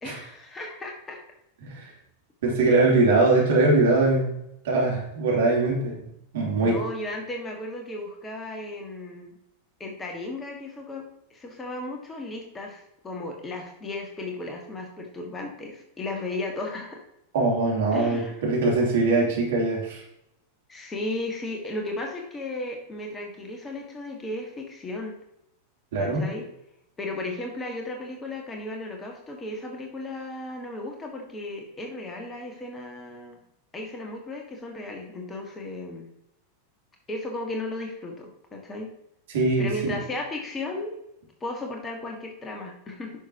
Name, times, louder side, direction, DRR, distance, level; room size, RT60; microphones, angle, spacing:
voice 1, 0.0-1.2 6.6-9.3 9.8-11.0 11.3-17.0 17.9-18.3 20.7-25.1 25.9-26.5 27.0-33.4 33.7-36.1 37.1-38.9 39.6-41.0 41.4-43.1, left 2 dB, 20° left, 1 dB, 1.7 m, -35 dB
voice 2, 2.4-4.3 4.6-6.0 6.3-6.8 17.3-20.0 25.9-26.2 39.3-39.9, right 3 dB, 55° right, -3 dB, 3.1 m, -22 dB
10.0 x 6.4 x 2.9 m, 0.81 s
figure-of-eight pair, 90°, 0 cm